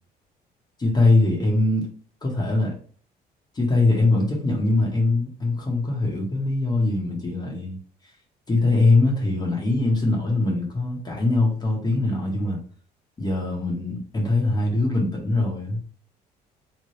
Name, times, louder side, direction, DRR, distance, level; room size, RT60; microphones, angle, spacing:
voice 1, 0.8-1.8 2.2-2.7 3.5-7.8 8.5-12.6 13.2-15.8, left 2 dB, 25° left, -1 dB, 1.2 m, -22 dB
3.5 x 3.2 x 3.1 m, 0.43 s
cardioid pair, 110°, 17 cm